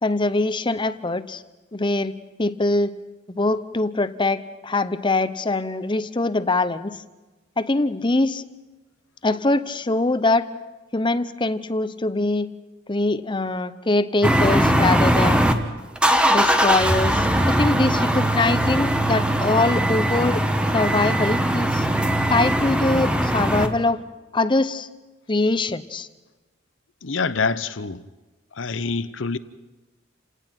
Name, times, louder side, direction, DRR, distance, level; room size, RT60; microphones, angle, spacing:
voice 1, 0.0-1.4 1.7-2.1 2.4-2.9 3.3-7.0 7.6-8.4 9.2-10.5 10.9-12.5 12.9-15.4 16.3-20.4 20.7-21.8 22.3-24.0 24.3-24.9 25.3-26.1, left 2 dB, 25° left, 0.8 m, -23 dB
sound 1, 14.2-15.5 16.0-23.7, right 1 dB, 5° right, 1.2 m, -20 dB
voice 2, 27.0-28.0 28.6-29.4, left 4 dB, 75° left, 0.8 m, -25 dB
29.5 x 18.0 x 6.0 m
head